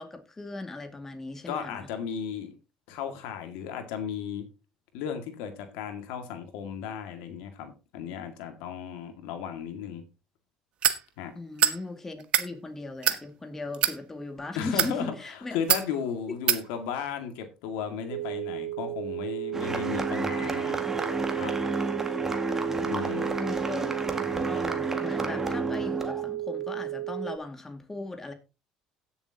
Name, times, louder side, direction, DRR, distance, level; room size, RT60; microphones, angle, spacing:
voice 1, 0.0-1.9 11.3-15.6 16.3-16.4 22.7-22.9 23.4-23.9 24.5-28.3, left 2 dB, 15° left, 2.1 m, -38 dB
voice 2, 1.5-2.6 2.9-4.4 4.9-10.0 11.2-11.3 14.5-20.8 21.3-21.5 22.8-23.3, left 7 dB, 85° left, 2.1 m, -35 dB
sound 1, 10.8-11.0 11.6-11.8 12.2-12.5 13.0-13.2 13.7-14.0 14.6-14.9 15.7-15.9 16.5-16.6, right 10 dB, 55° right, 1.2 m, -23 dB
sound 2, 18.1-27.4, right 15 dB, 80° right, 0.4 m, -34 dB
sound 3, 19.5-26.3, right 2 dB, 20° right, 1.9 m, -31 dB
17.0 x 7.0 x 2.9 m
supercardioid pair, 105°, 2 cm